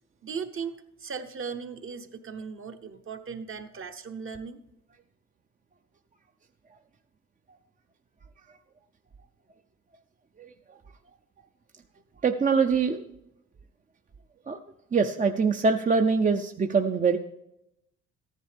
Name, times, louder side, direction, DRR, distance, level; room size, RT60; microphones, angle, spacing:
voice 1, 0.2-4.6, right 6 dB, 45° right, 6 dB, 1.0 m, -37 dB
voice 2, 12.2-13.0 14.5-14.6 14.9-17.2, right 5 dB, 25° right, 6 dB, 0.5 m, -23 dB
14.0 x 10.5 x 3.4 m, 0.85 s
cardioid pair, 90°, 30 cm